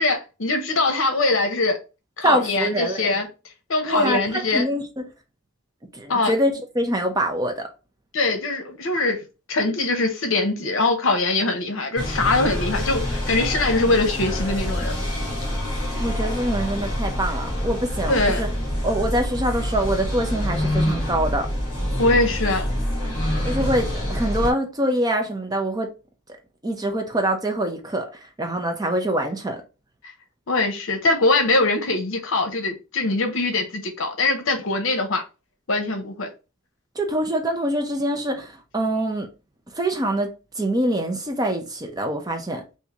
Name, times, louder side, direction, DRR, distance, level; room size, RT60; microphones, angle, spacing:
voice 1, 0.0-1.8 2.2-3.3 3.7-4.6 6.1-6.3 8.1-9.2 9.5-14.9 18.1-18.5 22.0-22.7 30.5-35.2 35.7-36.3, left 2 dB, 65° left, 0.7 m, -22 dB
voice 2, 2.2-3.1 3.9-5.1 5.9-7.6 16.0-18.5 18.8-21.5 23.5-25.9 26.6-28.1 28.4-29.6 37.0-39.3 39.7-40.3 40.6-42.6, right 1 dB, 15° right, 0.5 m, -24 dB
sound 1, 12.0-24.5, equal, 20° left, 1.2 m, -26 dB
3.7 x 2.6 x 2.9 m
head